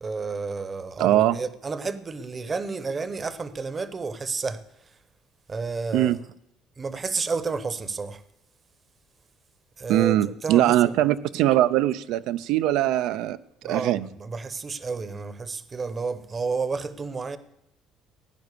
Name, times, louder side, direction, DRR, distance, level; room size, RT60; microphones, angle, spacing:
voice 1, 0.0-4.6 5.5-6.2 6.8-8.2 9.8-10.9 13.6-17.4, right 4 dB, 20° right, 0.8 m, -31 dB
voice 2, 1.0-1.4 5.9-6.2 9.9-13.4 13.6-14.1, right 13 dB, 75° right, 0.4 m, -21 dB
16.0 x 10.0 x 6.7 m
cardioid pair, 165°, 0 cm